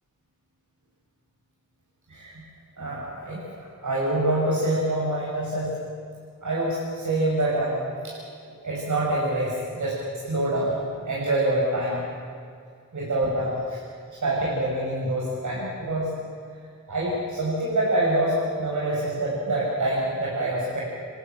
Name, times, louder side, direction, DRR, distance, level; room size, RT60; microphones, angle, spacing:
voice 1, 2.8-5.7 6.4-8.1 8.4-10.0 10.2-12.1 12.9-13.8 14.1-16.1 16.9-20.8, right 1 dB, 65° right, -6 dB, 6.1 m, -26 dB
27.5 x 13.5 x 9.0 m, 2.2 s
cardioid pair, 45°, 33 cm